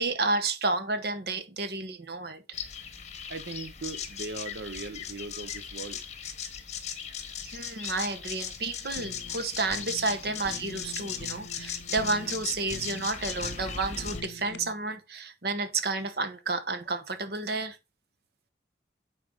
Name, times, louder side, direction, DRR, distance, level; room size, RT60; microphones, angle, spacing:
voice 1, 0.0-2.4 7.4-17.8, right 3 dB, 60° right, 1.1 m, -31 dB
sound 1, 2.5-14.2, left 7 dB, 40° left, 1.2 m, -38 dB
voice 2, 3.3-6.1, right 3 dB, 75° right, 0.8 m, -39 dB
Fire, 8.5-14.7, left 2 dB, 70° left, 0.6 m, -45 dB
9.8 x 4.6 x 3.9 m
head